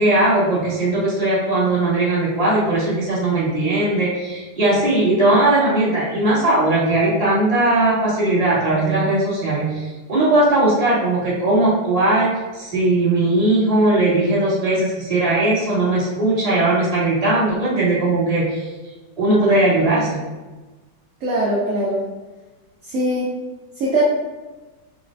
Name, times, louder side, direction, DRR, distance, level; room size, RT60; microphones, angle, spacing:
voice 1, 0.0-18.7 19.2-20.2, right 2 dB, 20° right, -8 dB, 1.4 m, -18 dB
voice 2, 21.2-22.0 22.9-23.3 23.8-24.0, right 1 dB, 55° right, -6 dB, 0.9 m, -21 dB
6.4 x 2.4 x 2.5 m, 1.2 s
omnidirectional pair, 2.0 m